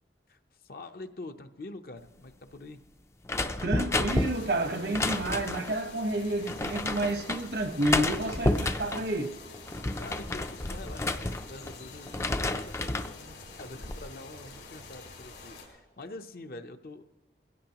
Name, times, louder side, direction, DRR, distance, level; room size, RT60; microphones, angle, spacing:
voice 1, 0.3-2.8 10.0-17.0, left 2 dB, 55° left, 0.7 m, -45 dB
sound 1, 3.3-5.8 6.5-7.4 7.8-9.1 9.5-11.7 12.1-13.1 13.6-14.0, left 2 dB, 15° left, 0.4 m, -30 dB
voice 2, 3.6-9.4, right 1 dB, 70° right, 1.1 m, -30 dB
sound 2, 4.1-15.7, left 3 dB, 90° left, 4.3 m, -47 dB
21.5 x 16.0 x 2.9 m
head